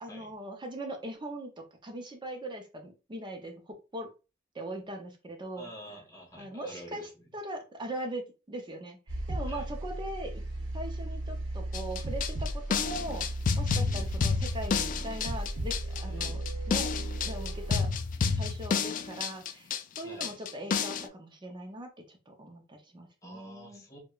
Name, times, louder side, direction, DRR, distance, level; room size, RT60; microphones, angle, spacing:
voice 1, 0.0-4.1 4.5-5.7 6.4-10.4 10.7-13.3 13.6-16.9 17.2-17.9 18.3-19.7 20.0-23.8, right 1 dB, 25° right, 0.5 m, -40 dB
voice 2, 5.6-7.1 9.5-9.6 13.8-14.2 16.1-16.4 20.0-20.3 23.2-24.0, equal, 15° left, 0.9 m, -48 dB
sound 1, 9.1-17.8, right 1 dB, 75° right, 0.8 m, -35 dB
sound 2, 11.7-21.1, left 5 dB, 45° left, 0.3 m, -30 dB
4.6 x 2.2 x 2.3 m
head